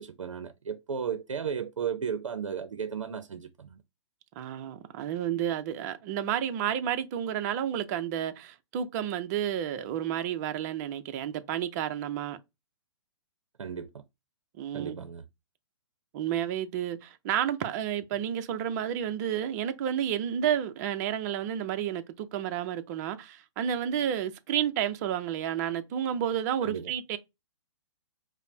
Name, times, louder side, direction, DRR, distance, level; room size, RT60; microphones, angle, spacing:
voice 1, 0.0-3.8 13.6-14.0 14.7-15.2 26.6-26.9, right 7 dB, 85° right, 0.5 m, -35 dB
voice 2, 4.4-12.4 14.6-15.0 16.1-27.2, right 10 dB, 35° right, 0.5 m, -31 dB
5.0 x 2.0 x 2.7 m
hypercardioid pair, 135°, 16 cm